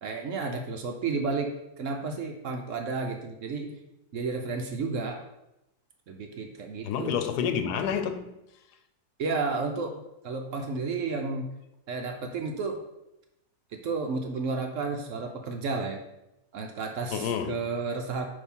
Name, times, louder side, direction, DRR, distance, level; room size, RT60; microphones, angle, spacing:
voice 1, 0.0-3.8 4.1-5.2 6.1-7.2 9.2-11.5 11.9-12.8 13.7-16.0 16.5-18.3, right 4 dB, 65° right, 0.9 m, -32 dB
voice 2, 6.8-8.3 17.1-17.6, left 7 dB, 85° left, 1.2 m, -29 dB
6.5 x 2.9 x 5.3 m
omnidirectional pair, 1.7 m